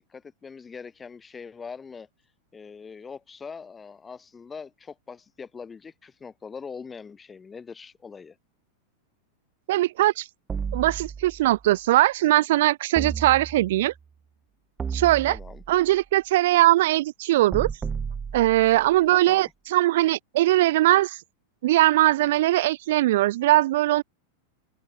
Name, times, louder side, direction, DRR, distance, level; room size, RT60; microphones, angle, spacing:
voice 1, 0.1-2.1 2.5-8.4 15.3-15.6 19.3-19.5, left 5 dB, 15° left, 2.7 m, -42 dB
voice 2, 9.7-10.3 10.7-13.9 14.9-15.4 15.7-17.7 18.3-21.2 21.6-24.0, right 16 dB, 55° right, 0.4 m, -20 dB
sound 1, 10.5-11.6 13.0-13.9 14.8-15.9 17.5-18.9, right 6 dB, 20° right, 0.9 m, -33 dB
figure-of-eight pair, 90°, 0 cm